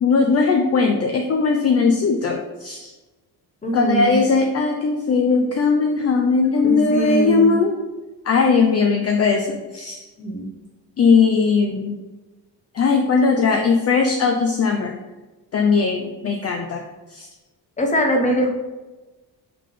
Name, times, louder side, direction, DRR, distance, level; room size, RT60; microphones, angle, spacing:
voice 1, 0.0-2.9 3.7-7.7 8.2-10.1 11.0-12.0 12.7-15.0 15.5-16.8 17.1-17.3, left 4 dB, 40° left, 3 dB, 0.5 m, -19 dB
voice 2, 3.6-4.1 6.6-7.5 10.2-10.5 17.8-18.5, right 1 dB, 20° left, 3 dB, 0.8 m, -22 dB
5.7 x 3.4 x 5.0 m, 1.2 s
wide cardioid pair, 165°, 41 cm